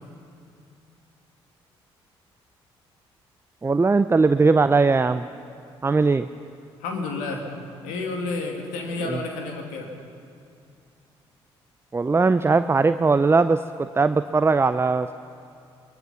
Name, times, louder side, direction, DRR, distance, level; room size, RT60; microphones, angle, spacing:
voice 1, 3.6-5.3 5.8-6.3 9.1-9.2 11.9-15.1, right 4 dB, 20° right, 12 dB, 0.6 m, -20 dB
voice 2, 6.8-7.4 7.8-9.9, left 3 dB, 70° left, 2 dB, 2.6 m, -30 dB
23.0 x 20.0 x 5.8 m, 2.6 s
figure-of-eight pair, 45°, 14 cm